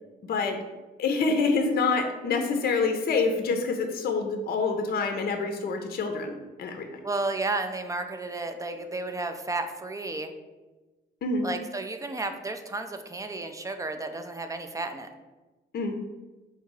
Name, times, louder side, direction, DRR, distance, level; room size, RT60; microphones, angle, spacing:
voice 1, 0.2-0.6 1.0-6.3 6.6-6.9 11.2-11.5 15.7-16.0, left 4 dB, 50° left, 5 dB, 0.6 m, -26 dB
voice 2, 7.0-10.3 11.4-15.1, right 2 dB, 15° right, 7 dB, 0.4 m, -32 dB
3.7 x 2.7 x 4.6 m, 1.2 s
cardioid pair, 90°, 20 cm